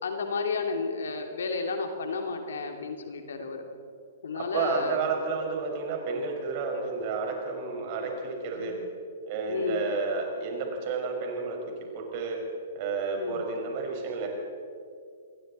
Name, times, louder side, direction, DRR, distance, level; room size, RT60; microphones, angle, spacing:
voice 1, 0.0-3.6 4.2-5.0 8.6-8.8 9.5-9.8 13.2-13.4, left 4 dB, 70° left, 4 dB, 2.7 m, -32 dB
voice 2, 4.4-8.8 9.3-11.6 11.9-12.4 12.7-14.3, right 4 dB, 45° right, 1 dB, 5.9 m, -31 dB
27.0 x 21.5 x 4.4 m, 2.4 s
figure-of-eight pair, 115°, 0 cm